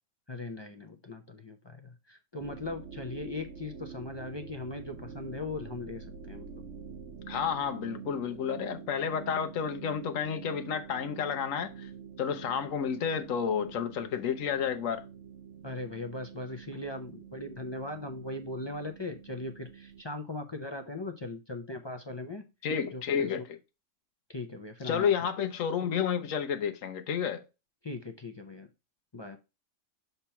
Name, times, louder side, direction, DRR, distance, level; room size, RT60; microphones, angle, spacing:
voice 1, 0.3-6.6 15.6-22.4 22.9-23.0 23.3-23.4 24.3-25.1 27.8-28.7 29.1-29.4, left 2 dB, 40° left, 0.3 m, -39 dB
sound 1, 2.4-20.0, right 7 dB, 65° right, 0.9 m, -46 dB
voice 2, 7.3-11.9 12.2-15.0 22.6-23.6 24.8-27.4, left 7 dB, 75° left, 1.0 m, -31 dB
6.7 x 3.0 x 5.6 m
omnidirectional pair, 1.4 m